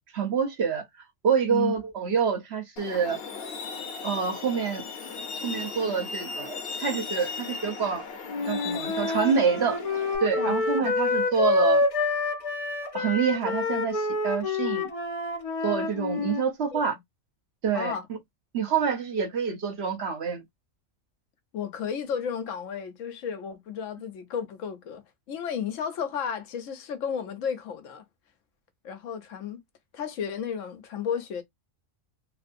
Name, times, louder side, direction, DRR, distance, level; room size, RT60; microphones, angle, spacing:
voice 1, 0.1-0.8 1.2-3.2 4.0-4.8 5.4-8.0 8.5-9.8 10.2-11.8 12.9-14.9 15.6-16.9 17.6-17.9 18.5-20.4, right 6 dB, 60° right, 1.1 m, -27 dB
Truck, 2.8-10.2, left 4 dB, 55° left, 0.9 m, -37 dB
Wind instrument woodwind instrument, 8.3-16.4, left 3 dB, 40° left, 0.5 m, -27 dB
voice 2, 10.4-10.9 16.7-16.8 17.7-18.0 21.5-25.0 25.3-28.0 28.8-29.6 29.9-31.4, left 7 dB, 80° left, 1.1 m, -33 dB
3.2 x 2.6 x 2.5 m
omnidirectional pair, 1.3 m